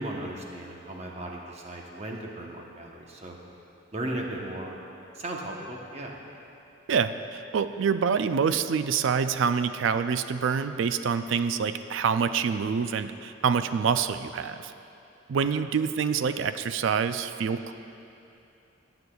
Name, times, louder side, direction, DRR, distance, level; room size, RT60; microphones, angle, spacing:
voice 1, 0.0-3.4 3.9-4.8 5.1-6.2, right 1 dB, 30° right, -1 dB, 0.9 m, -36 dB
voice 2, 6.9-14.7 15.3-17.7, right 6 dB, 70° right, 10 dB, 0.4 m, -26 dB
18.0 x 7.9 x 2.3 m, 2.8 s
head